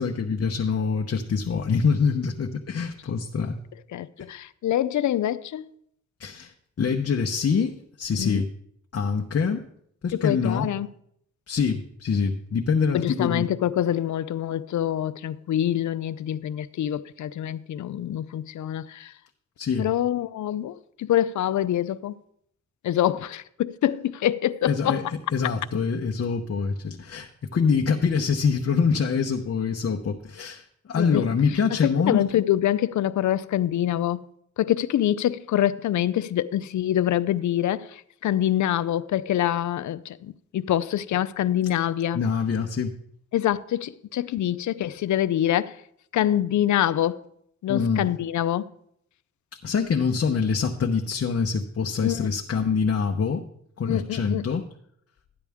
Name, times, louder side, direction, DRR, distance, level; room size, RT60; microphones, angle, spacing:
voice 1, 0.0-3.6 6.2-8.5 8.9-9.7 10.0-10.7 11.5-13.5 19.6-19.9 24.7-25.1 25.3-32.3 42.1-43.0 47.7-48.1 49.6-53.5 53.8-54.7, left 5 dB, 50° left, 0.9 m, -25 dB
voice 2, 3.9-5.6 8.2-8.4 10.2-10.9 12.9-19.1 19.8-22.1 22.8-25.0 31.0-31.3 31.8-34.2 34.6-42.2 43.3-45.7 46.1-47.2 47.6-48.7 52.0-52.3 53.9-54.4, left 12 dB, 80° left, 0.5 m, -25 dB
13.5 x 9.8 x 3.5 m
cardioid pair, 70°, 29 cm